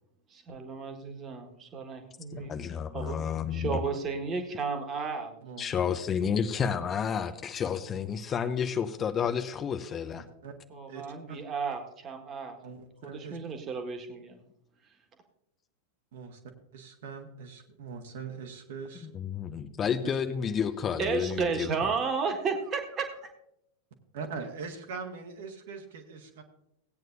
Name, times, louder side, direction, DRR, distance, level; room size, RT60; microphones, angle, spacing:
voice 1, 0.3-2.6 2.9-3.2 3.5-5.4 10.7-12.5 13.0-14.4 21.0-23.1, right 5 dB, 25° right, 4 dB, 1.6 m, -33 dB
voice 2, 2.3-3.8 5.6-10.2 19.0-21.7, left 7 dB, 25° left, 8 dB, 0.6 m, -30 dB
voice 3, 10.2-10.5 10.9-11.4 12.6-13.4 16.1-16.4 16.7-19.1 20.0-20.1 24.1-26.4, right 5 dB, 55° right, 4 dB, 1.5 m, -42 dB
17.0 x 9.1 x 2.6 m, 0.79 s
figure-of-eight pair, 90°, 0 cm